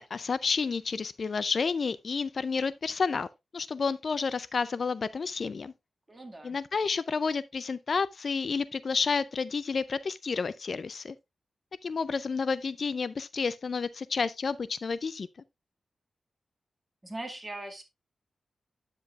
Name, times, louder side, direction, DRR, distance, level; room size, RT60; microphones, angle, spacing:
voice 1, 0.0-3.3 3.5-5.7 6.4-11.2 11.8-15.3, left 5 dB, 50° left, 0.4 m, -30 dB
voice 2, 6.1-6.6 17.0-17.8, right 2 dB, 15° right, 2.1 m, -40 dB
9.6 x 7.4 x 2.4 m
wide cardioid pair, 120°, 0 cm